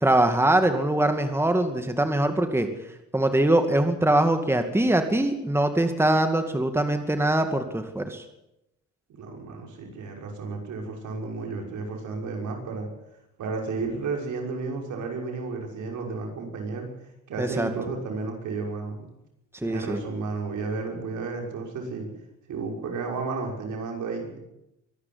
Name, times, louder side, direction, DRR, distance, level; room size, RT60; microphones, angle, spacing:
voice 1, 0.0-2.7 3.1-8.2 17.4-17.7 19.6-20.0, right 1 dB, 10° right, 7 dB, 2.3 m, -22 dB
voice 2, 9.2-12.9 13.4-16.9 17.3-19.1 19.6-22.1 22.5-24.4, right 4 dB, 75° right, 1 dB, 6.1 m, -32 dB
23.5 x 11.5 x 9.7 m, 0.86 s
cardioid pair, 90°, 30 cm